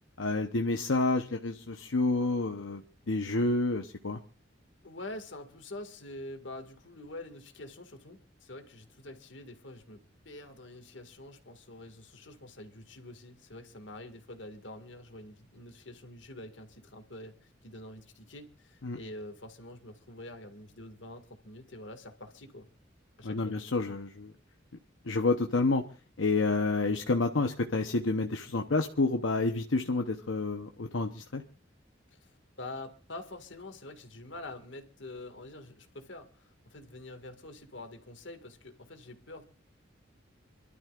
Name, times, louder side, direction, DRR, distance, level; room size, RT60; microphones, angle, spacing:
voice 1, 0.2-4.2 18.8-19.0 23.2-24.3 25.0-25.8 26.2-31.4, left 3 dB, 85° left, 1.0 m, -29 dB
voice 2, 4.8-10.0 10.3-22.7 23.2-23.6 32.1-39.4, left 2 dB, 65° left, 2.1 m, -46 dB
28.5 x 12.5 x 2.5 m
head